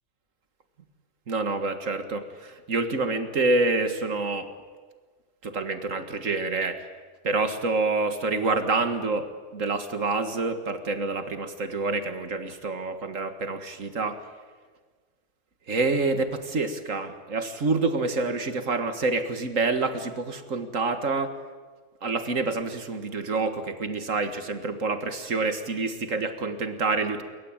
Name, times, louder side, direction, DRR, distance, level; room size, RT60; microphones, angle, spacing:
voice 1, 1.3-4.5 5.4-6.8 7.2-14.2 15.7-21.3 22.0-27.2, right 3 dB, 80° right, 9 dB, 2.2 m, -27 dB
27.5 x 23.5 x 8.9 m, 1.4 s
omnidirectional pair, 1.3 m